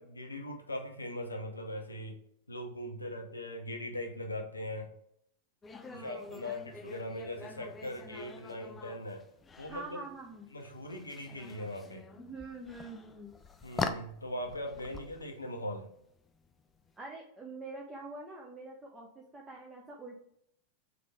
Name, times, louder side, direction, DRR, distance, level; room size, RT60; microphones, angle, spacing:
voice 1, 0.0-2.2 2.5-4.9 5.9-9.2 9.6-10.0 10.5-12.0 13.6-15.9, left 1 dB, 80° left, 3 dB, 0.7 m, -40 dB
sound 1, 5.6-16.9, left 4 dB, 20° left, 0.4 m, -44 dB
voice 2, 5.7-6.5 9.7-10.5 12.1-13.4 17.0-20.2, right 3 dB, 15° right, -2 dB, 0.8 m, -46 dB
3.8 x 3.5 x 3.2 m, 0.71 s
figure-of-eight pair, 90°, 0 cm